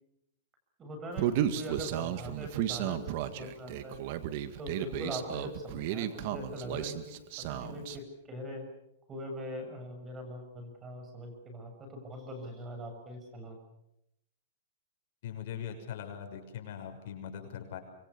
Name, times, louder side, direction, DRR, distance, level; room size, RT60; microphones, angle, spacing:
voice 1, 0.8-4.0 4.6-8.6 9.1-13.6, equal, 20° right, 5 dB, 7.1 m, -42 dB
Human voice, 1.2-8.0, right 11 dB, 50° right, 2.0 m, -34 dB
voice 2, 15.2-17.8, left 9 dB, 60° left, 4 dB, 6.5 m, -41 dB
25.5 x 24.0 x 7.1 m, 0.84 s
hypercardioid pair, 145°, 0 cm